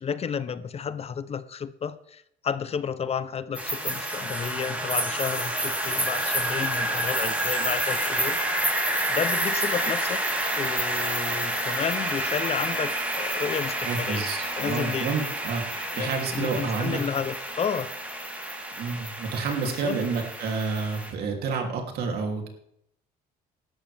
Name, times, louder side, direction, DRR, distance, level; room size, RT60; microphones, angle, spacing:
voice 1, 0.0-8.4 9.1-10.2 10.6-14.2 14.6-15.1 15.9-17.9 19.6-20.0, left 7 dB, 35° left, 14 dB, 0.8 m, -31 dB
sound 1, 3.5-21.1, right 1 dB, 10° right, 3.6 m, -29 dB
voice 2, 13.8-14.4 14.6-17.0 18.8-22.5, right 4 dB, 70° right, 2 dB, 3.1 m, -29 dB
17.0 x 13.0 x 3.5 m, 0.74 s
cardioid pair, 110°, 17 cm